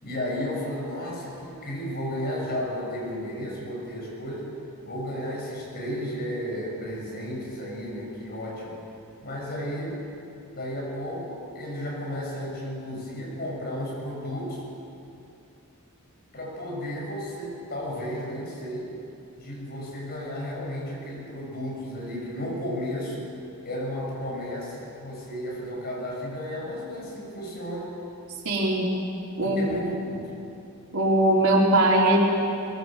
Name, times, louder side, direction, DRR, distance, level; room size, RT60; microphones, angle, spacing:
voice 1, 0.0-4.5 4.8-8.8 9.2-10.0 10.5-14.7 16.3-19.0 19.4-23.3 23.6-27.9 29.4-30.3, equal, 45° left, -3 dB, 7.0 m, -33 dB
voice 2, 28.4-28.9 29.4-29.8 30.9-32.2, right 1 dB, 70° right, -3 dB, 4.5 m, -21 dB
21.5 x 20.5 x 7.7 m, 2.7 s
head